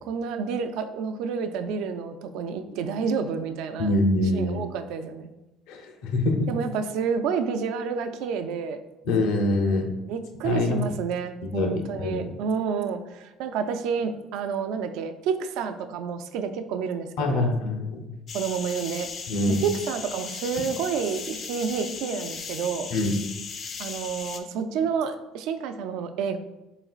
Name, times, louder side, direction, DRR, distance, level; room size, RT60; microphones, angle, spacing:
voice 1, 0.0-3.9 4.3-5.3 6.5-8.8 10.0-17.5 18.3-19.1 19.5-22.9 23.8-26.4, right 6 dB, 75° right, 8 dB, 0.3 m, -29 dB
voice 2, 3.8-4.6 5.7-6.5 9.1-9.9 10.4-10.8 11.4-12.3 17.2-18.1 19.3-19.6 22.9-23.1, left 2 dB, 75° left, 3 dB, 0.7 m, -24 dB
sound 1, 18.3-24.4, left 5 dB, 40° left, 0.4 m, -37 dB
4.1 x 3.7 x 2.4 m, 1.0 s
cardioid pair, 140°, 0 cm